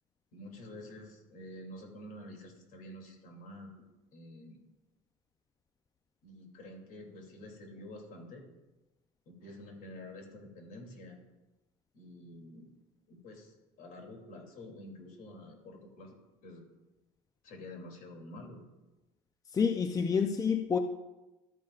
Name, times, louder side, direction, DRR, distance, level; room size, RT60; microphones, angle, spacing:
voice 1, 0.3-3.8 4.1-4.6 6.2-8.5 9.3-11.2 11.9-12.7 13.1-16.2 16.4-16.6 17.4-18.6, left 1 dB, 60° left, 2.8 m, -48 dB
voice 2, 19.5-20.8, left 6 dB, 20° left, 0.5 m, -28 dB
13.0 x 9.3 x 2.4 m
supercardioid pair, 105°, 16 cm